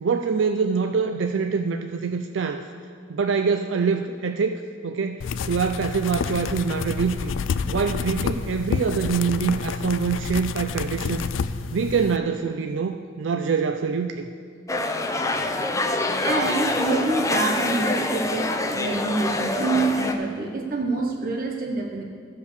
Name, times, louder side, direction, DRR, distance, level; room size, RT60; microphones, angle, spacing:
voice 1, 0.0-2.6 3.1-7.3 7.7-11.3 11.7-14.3, right 5 dB, 75° right, 6 dB, 0.4 m, -25 dB
sound 1, 5.2-12.2, left 5 dB, 85° left, 0.4 m, -29 dB
sound 2, 14.7-20.2, left 2 dB, 15° left, 0.6 m, -25 dB
voice 2, 16.2-22.0, right 3 dB, 50° right, 1 dB, 0.9 m, -26 dB
13.5 x 5.4 x 6.6 m, 2.1 s
head